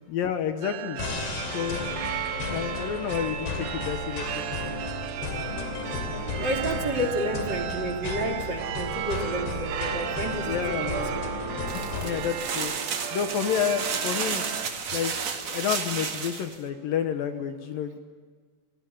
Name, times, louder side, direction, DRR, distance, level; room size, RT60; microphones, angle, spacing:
voice 1, 0.1-1.0 1.5-2.0 2.4-4.7 10.5-10.9 12.0-12.7 13.1-14.4 14.9-15.1 15.5-18.0, left 8 dB, 70° left, 7 dB, 2.7 m, -30 dB
sound 1, 0.6-14.7, right 11 dB, 75° right, 2.7 m, -35 dB
sound 2, 1.0-12.3, left 5 dB, 85° left, 4.8 m, -34 dB
voice 2, 6.4-11.2, right 1 dB, 30° right, 5 dB, 3.2 m, -30 dB
sound 3, 11.7-16.5, right 6 dB, 50° right, 2.9 m, -32 dB
28.0 x 19.5 x 8.7 m, 1.5 s
omnidirectional pair, 4.6 m